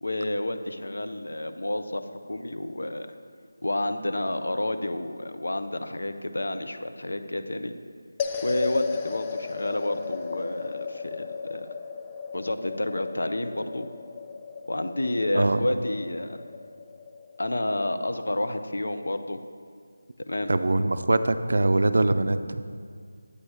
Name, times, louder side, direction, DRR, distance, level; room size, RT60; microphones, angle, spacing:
voice 1, 0.0-2.0 2.3-3.1 3.6-7.7 8.4-11.7 12.3-13.9 14.7-16.4 17.4-19.4 20.3-20.5, left 1 dB, 75° left, 8 dB, 0.5 m, -30 dB
sound 1, 8.2-18.6, left 5 dB, 15° left, 0.3 m, -36 dB
voice 2, 15.3-15.7 20.5-22.6, right 2 dB, 65° right, 11 dB, 0.3 m, -23 dB
8.3 x 3.3 x 5.4 m, 2.1 s
figure-of-eight pair, 165°, 0 cm